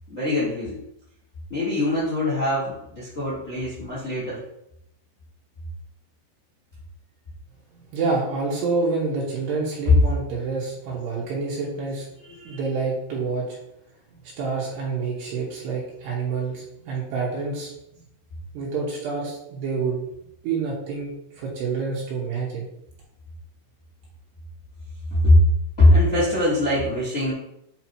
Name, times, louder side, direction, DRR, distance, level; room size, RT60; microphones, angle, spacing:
voice 1, 0.1-0.8 1.5-4.4 12.2-12.6 25.1-25.4 25.8-27.3, left 1 dB, 55° left, -7 dB, 0.8 m, -21 dB
voice 2, 7.9-12.1 12.4-13.4 14.4-17.7 18.5-20.1 20.4-22.7, right 4 dB, 70° right, -4 dB, 3.3 m, -27 dB
8.8 x 5.0 x 3.0 m, 0.79 s
omnidirectional pair, 5.3 m